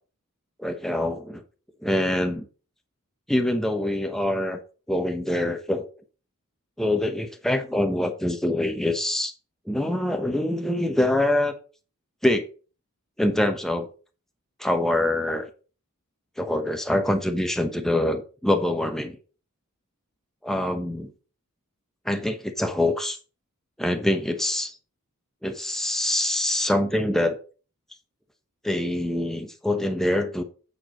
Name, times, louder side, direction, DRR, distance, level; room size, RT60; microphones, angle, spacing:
voice 1, 0.6-1.4 1.8-2.5 3.3-4.6 4.9-5.9 6.8-9.3 9.7-11.6 12.2-12.5 13.2-13.9 14.6-15.5 16.4-19.2 20.4-21.1 22.0-23.2 23.8-24.8 25.4-27.4 28.6-30.4, left 1 dB, ahead, 0.9 m, -24 dB
8.4 x 4.7 x 5.1 m
head